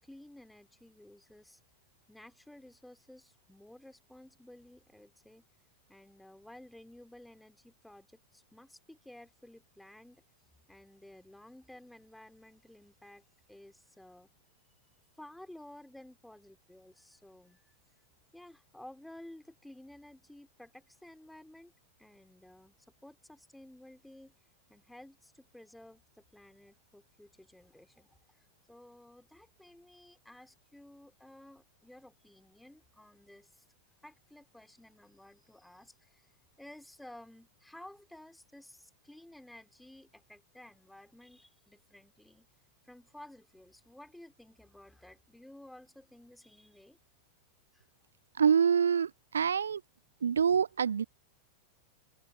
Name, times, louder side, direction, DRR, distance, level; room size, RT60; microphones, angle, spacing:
voice 1, 0.0-1.6 2.1-5.4 5.9-10.2 10.7-14.3 15.2-17.7 18.3-21.7 22.0-22.8 23.0-24.4 24.7-33.6 34.0-36.3 36.6-42.5 42.8-47.0 47.7-47.9, left 1 dB, 5° left, 5.2 m, -54 dB
voice 2, 48.3-49.8 50.2-51.0, right 7 dB, 70° right, 0.7 m, -26 dB
open air
figure-of-eight pair, 90°, 0 cm